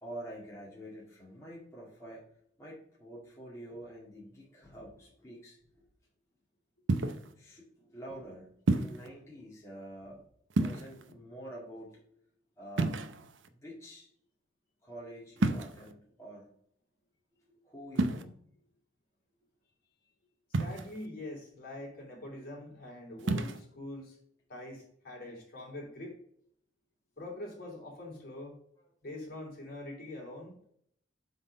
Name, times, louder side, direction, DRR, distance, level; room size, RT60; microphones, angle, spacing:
voice 1, 0.0-2.3 2.6-5.8 7.4-10.2 10.6-12.2 12.6-13.0 13.5-14.1 14.8-16.5 17.4-18.4 28.8-28.9, right 1 dB, 15° left, -5 dB, 2.0 m, -47 dB
sound 1, 6.9-7.3 8.7-9.1 10.5-11.1 12.8-13.5 15.4-15.9 17.9-18.2 20.5-21.1 23.2-23.6, right 2 dB, 85° right, 0.7 m, -30 dB
voice 2, 20.5-24.2 24.5-26.1 27.2-28.5 29.0-30.5, left 1 dB, 55° left, -2 dB, 3.2 m, -44 dB
7.6 x 4.0 x 5.1 m, 0.65 s
head